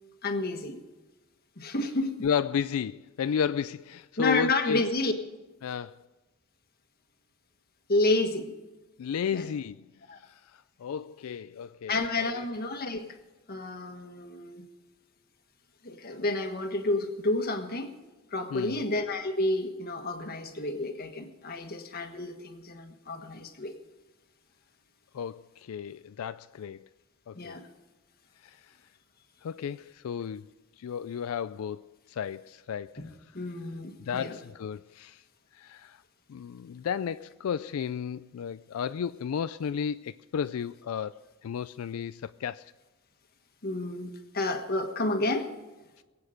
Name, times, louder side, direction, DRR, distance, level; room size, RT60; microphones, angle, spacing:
voice 1, 0.2-0.8 1.6-2.1 4.2-5.1 7.9-8.5 9.3-9.5 10.1-10.2 11.9-13.2 13.5-14.7 15.8-17.9 18.3-23.7 27.3-27.6 33.0-34.4 43.6-45.5, left 2 dB, 45° left, 1.5 m, -30 dB
voice 2, 2.2-4.9 5.6-6.0 9.0-9.8 10.2-12.5 18.5-18.8 25.1-26.9 27.3-27.5 28.4-28.6 29.4-30.5 30.8-33.0 34.0-35.2 35.5-36.0 36.3-42.7, left 7 dB, 85° left, 0.4 m, -33 dB
22.5 x 8.6 x 5.0 m
head